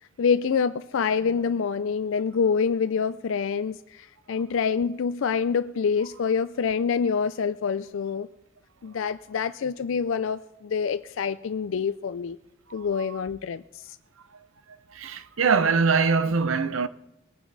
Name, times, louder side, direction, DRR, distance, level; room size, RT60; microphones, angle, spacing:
voice 1, 0.2-8.3 8.8-12.4 12.7-14.0, left 6 dB, 65° left, 0.4 m, -26 dB
voice 2, 14.9-16.9, right 5 dB, 75° right, 0.6 m, -23 dB
21.5 x 9.2 x 4.0 m
head